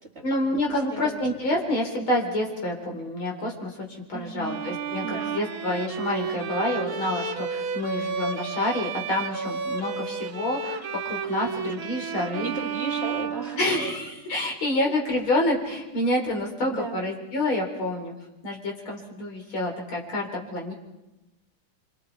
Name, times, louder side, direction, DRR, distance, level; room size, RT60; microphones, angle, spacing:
voice 1, 0.2-12.5 13.6-18.1 18.4-20.7, left 1 dB, 85° left, 0 dB, 4.7 m, -28 dB
voice 2, 0.9-1.2 4.1-4.6 5.0-5.3 12.4-13.6 14.8-14.9 16.7-17.0, right 3 dB, 35° right, 2 dB, 2.2 m, -35 dB
Bowed string instrument, 4.4-14.1, right 6 dB, 50° right, 1.5 m, -32 dB
27.5 x 24.5 x 4.7 m, 0.98 s
omnidirectional pair, 2.2 m